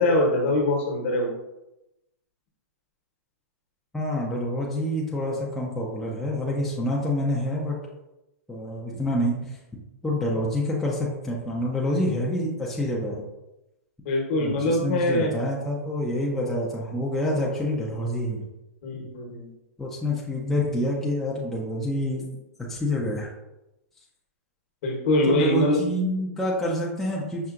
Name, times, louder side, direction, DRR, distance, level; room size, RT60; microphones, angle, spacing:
voice 1, 0.0-1.3 14.0-15.3 18.8-19.5 24.8-25.8, left 1 dB, 50° left, 1 dB, 1.1 m, -23 dB
voice 2, 3.9-7.8 8.5-9.6 10.0-13.2 14.4-18.4 19.8-22.3 22.7-23.3 25.3-27.5, left 1 dB, 5° left, -5 dB, 0.5 m, -27 dB
5.7 x 2.7 x 2.4 m, 0.94 s
hypercardioid pair, 150°, 8 cm